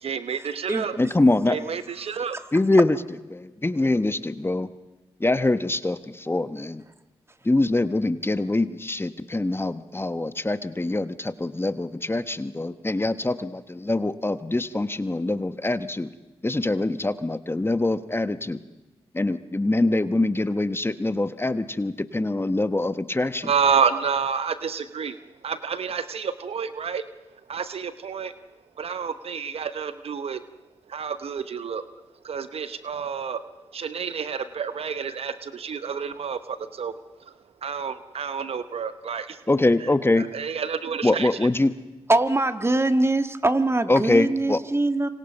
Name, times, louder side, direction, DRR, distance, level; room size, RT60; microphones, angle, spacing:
voice 1, 0.0-1.0 1.5-2.4 23.4-25.2 25.4-27.1 27.5-28.3 28.8-30.4 30.9-31.8 32.2-33.4 33.7-37.3 37.6-39.4 39.8-39.9 40.1-41.3, right 6 dB, 65° right, 12 dB, 1.0 m, -29 dB
voice 2, 1.0-1.6 2.5-3.0 3.3-4.7 5.2-6.8 7.4-16.1 16.4-18.6 19.1-23.5 39.5-40.3 41.0-41.7 43.9-44.6, left 2 dB, 20° left, 12 dB, 1.2 m, -24 dB
voice 3, 42.1-45.1, right 2 dB, 25° right, 9 dB, 1.8 m, -22 dB
27.0 x 25.0 x 5.5 m, 1.1 s
supercardioid pair, 40°, 11 cm